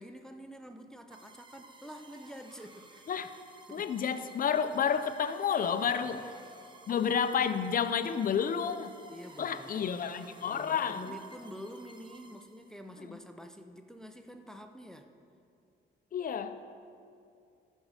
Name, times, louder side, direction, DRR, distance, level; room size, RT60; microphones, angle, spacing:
voice 1, 0.0-3.3 3.7-3.9 6.0-6.2 9.1-9.9 10.4-15.1, equal, 5° left, 6 dB, 0.6 m, -47 dB
sound 1, 1.1-12.9, right 3 dB, 25° right, 0.8 m, -56 dB
voice 2, 3.7-6.3 6.9-8.9 9.4-11.1 16.1-16.6, left 7 dB, 45° left, 11 dB, 0.6 m, -30 dB
14.0 x 5.4 x 4.9 m, 2.5 s
cardioid pair, 90°, 20 cm